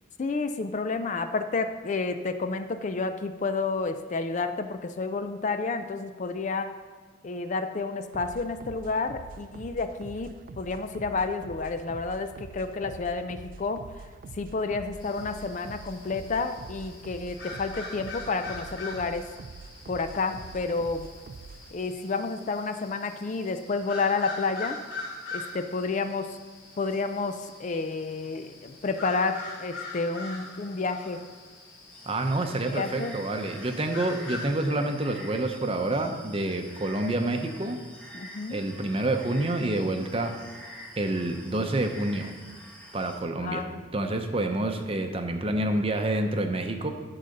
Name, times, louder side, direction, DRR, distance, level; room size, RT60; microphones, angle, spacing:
voice 1, 0.2-6.7 7.2-13.9 14.3-19.2 19.9-21.1 21.7-24.8 25.3-26.4 26.8-31.2 32.7-33.2 38.1-38.6 43.4-43.8, left 4 dB, 40° left, 8 dB, 0.4 m, -30 dB
sound 1, 8.1-21.7, right 4 dB, 45° right, 0.3 m, -45 dB
sound 2, 15.0-34.4, left 3 dB, 85° left, 3.0 m, -43 dB
sound 3, 31.9-43.2, equal, 5° left, 1.2 m, -47 dB
voice 2, 32.1-37.8 38.5-40.3 41.0-42.3 42.9-46.9, right 2 dB, 30° right, 5 dB, 0.7 m, -28 dB
12.0 x 4.0 x 6.5 m, 1.5 s
head